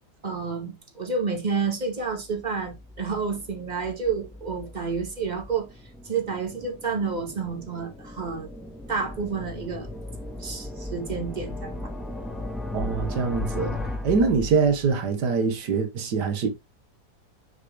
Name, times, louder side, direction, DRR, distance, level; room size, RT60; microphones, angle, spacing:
voice 1, 0.2-5.7 6.0-8.5 8.9-9.9 10.4-11.8, right 5 dB, 25° right, 2.2 m, -29 dB
sound 1, 2.1-15.0, left 1 dB, ahead, 2.0 m, -37 dB
voice 2, 12.7-16.5, right 5 dB, 90° right, 1.9 m, -24 dB
7.6 x 5.0 x 3.5 m
omnidirectional pair, 1.7 m